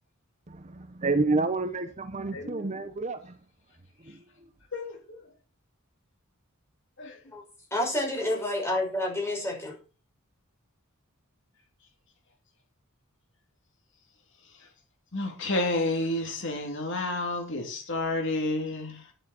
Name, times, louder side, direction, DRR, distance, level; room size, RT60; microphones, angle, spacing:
voice 1, 0.5-3.3 4.1-4.2, right 3 dB, 35° right, 0.8 m, -29 dB
voice 2, 2.3-2.8 4.0-4.2 4.7-5.3 7.0-7.3 8.1-8.5 14.4-14.7 15.1-19.1, left 2 dB, 60° left, 3.1 m, -31 dB
voice 3, 7.7-9.7, left 1 dB, 10° left, 5.7 m, -29 dB
11.0 x 10.5 x 4.4 m
head